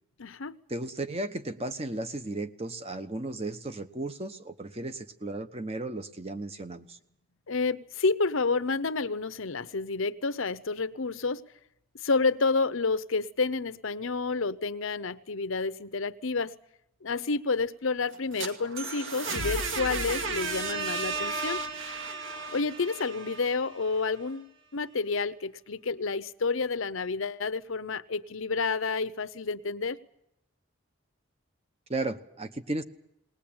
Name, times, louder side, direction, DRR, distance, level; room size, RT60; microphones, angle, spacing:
voice 1, 0.2-0.6 7.5-11.4 12.0-16.6 17.0-21.6 22.5-30.0, left 4 dB, 75° left, 14 dB, 0.8 m, -29 dB
voice 2, 0.7-7.0 31.9-32.8, right 2 dB, 30° right, 9 dB, 1.0 m, -35 dB
sound 1, 18.1-24.0, right 3 dB, 70° right, 2.3 m, -34 dB
20.0 x 20.0 x 8.8 m, 0.79 s
head